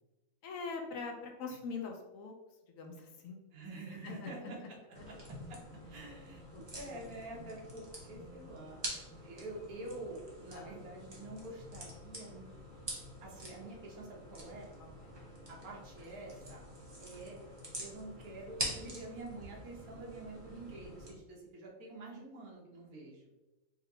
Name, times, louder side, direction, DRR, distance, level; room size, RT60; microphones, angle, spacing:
voice 1, 0.4-2.3 2.7-3.4 3.9-4.5 5.0-5.1 6.5-7.1 10.5-10.8 14.8-14.9, left 4 dB, 70° left, 2 dB, 0.9 m, -43 dB
voice 2, 3.5-5.6 5.9-12.5 13.2-14.7 15.5-16.6 17.0-17.4 17.8-23.3, right 2 dB, 80° right, -2 dB, 1.4 m, -47 dB
sound 1, 4.9-21.1, equal, 25° right, 0.6 m, -46 dB
4.9 x 2.7 x 2.6 m, 1.1 s
omnidirectional pair, 1.5 m